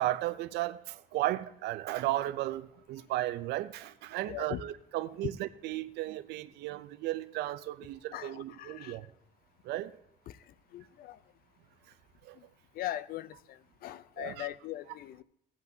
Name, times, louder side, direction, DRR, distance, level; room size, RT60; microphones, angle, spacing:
voice 1, 0.0-9.1 9.6-9.9 12.2-12.4 14.2-14.5, right 15 dB, 75° right, 0.5 m, -35 dB
voice 2, 4.2-4.6 8.1-9.0 10.3-10.4 10.7-11.2 12.7-15.2, left 14 dB, 60° left, 0.5 m, -40 dB
16.0 x 8.1 x 2.7 m
cardioid pair, 110°, 17 cm